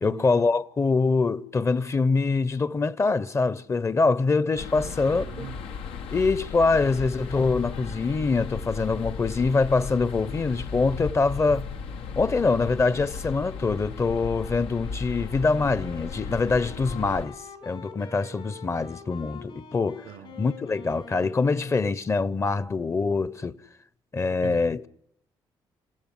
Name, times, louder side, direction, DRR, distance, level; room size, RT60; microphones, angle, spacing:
voice 1, 0.0-5.5 6.1-11.7 12.2-17.3 17.6-20.0 20.4-23.6 24.1-24.8, left 4 dB, 30° left, 1.0 m, -24 dB
sound 1, 4.6-17.3, left 5 dB, 80° left, 1.5 m, -36 dB
voice 2, 4.7-5.6 20.1-20.4 24.4-24.9, right 11 dB, 80° right, 0.9 m, -42 dB
Wind instrument woodwind instrument, 15.3-22.0, left 4 dB, 65° left, 6.0 m, -45 dB
28.5 x 15.5 x 9.4 m
cardioid pair, 85°, 9 cm